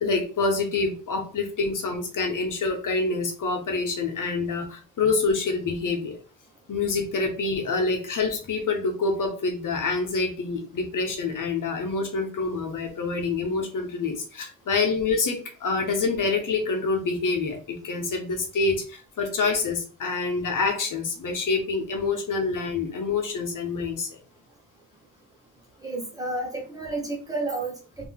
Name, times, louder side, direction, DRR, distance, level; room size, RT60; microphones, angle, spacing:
voice 1, 0.0-6.2 6.7-24.2, left 4 dB, 65° left, 3 dB, 1.1 m, -26 dB
voice 2, 25.8-28.1, right 2 dB, 10° right, -3 dB, 1.3 m, -31 dB
3.8 x 2.9 x 3.6 m, 0.37 s
wide cardioid pair, 145°, 35 cm